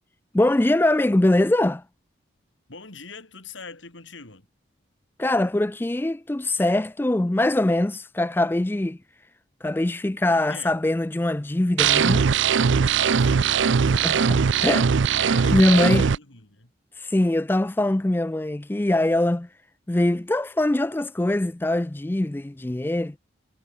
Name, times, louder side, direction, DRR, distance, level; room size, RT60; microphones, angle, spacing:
voice 1, 0.3-1.8 5.2-9.0 9.6-12.3 13.8-16.0 17.0-19.5 19.9-23.2, left 1 dB, 10° left, 0.3 m, -23 dB
voice 2, 2.7-4.5 10.3-10.8 13.0-13.3 15.3-16.7, left 4 dB, 80° left, 3.6 m, -42 dB
sound 1, 11.8-16.2, right 6 dB, 75° right, 0.5 m, -20 dB
head